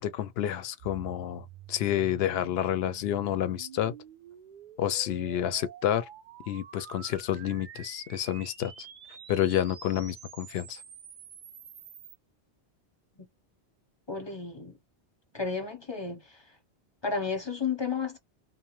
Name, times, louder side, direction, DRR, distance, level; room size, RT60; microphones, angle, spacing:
voice 1, 0.0-3.9 4.8-6.1 6.5-8.9 9.3-10.8, left 11 dB, 70° left, 0.7 m, -29 dB
sound 1, 0.8-12.2, right 8 dB, 55° right, 0.6 m, -49 dB
voice 2, 14.1-14.7 15.3-16.4 17.0-18.2, left 5 dB, 25° left, 0.8 m, -32 dB
2.6 x 2.1 x 3.0 m
omnidirectional pair, 1.2 m